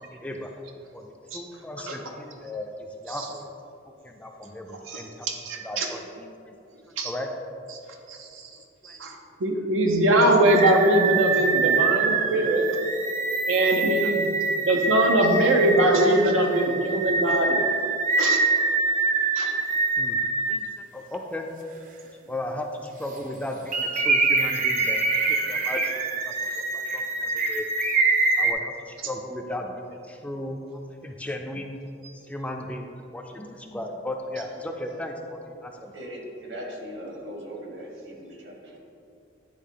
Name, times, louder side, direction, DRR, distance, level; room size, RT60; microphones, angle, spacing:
voice 1, 0.2-0.5 0.9-3.5 4.0-5.3 5.6-6.5 6.9-7.3 8.8-9.0 14.0-14.1 18.6-18.9 20.0-20.2 20.5-21.5 22.2-27.7 28.4-30.6 31.0-31.8 32.3-32.9 33.1-35.9, left 1 dB, 5° left, 2 dB, 0.3 m, -36 dB
voice 2, 4.9-5.9 7.0-7.1 8.1-8.5 8.8-9.2 9.4-12.6 13.5-14.3 14.7-17.6 18.2-18.4 19.3-19.5, right 1 dB, 90° right, 2 dB, 0.6 m, -22 dB
sound 1, 10.4-20.6 21.1-21.2 23.7-28.5, right 3 dB, 45° right, 0.6 m, -25 dB
voice 3, 35.9-38.8, equal, 60° right, -1 dB, 1.4 m, -39 dB
10.0 x 3.6 x 3.7 m, 2.6 s
head